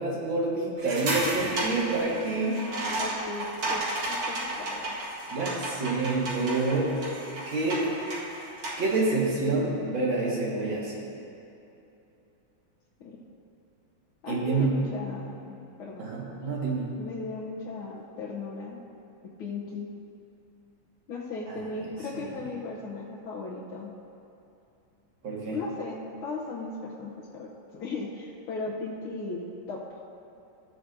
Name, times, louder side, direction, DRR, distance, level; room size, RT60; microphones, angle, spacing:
voice 1, 0.0-2.7 5.3-6.9 7.5-7.9 8.8-11.0 14.3-14.8 16.0-16.9 22.1-22.3 25.2-25.6, right 3 dB, 70° right, -5 dB, 2.6 m, -27 dB
sound 1, 0.8-8.9, right 2 dB, 90° right, 2.7 m, -33 dB
voice 2, 3.0-5.0 13.0-13.2 14.2-16.1 17.0-18.8 19.4-19.9 21.1-23.9 25.5-30.0, left 3 dB, 80° left, -5 dB, 1.9 m, -37 dB
15.0 x 9.3 x 2.7 m, 2.8 s
omnidirectional pair, 2.3 m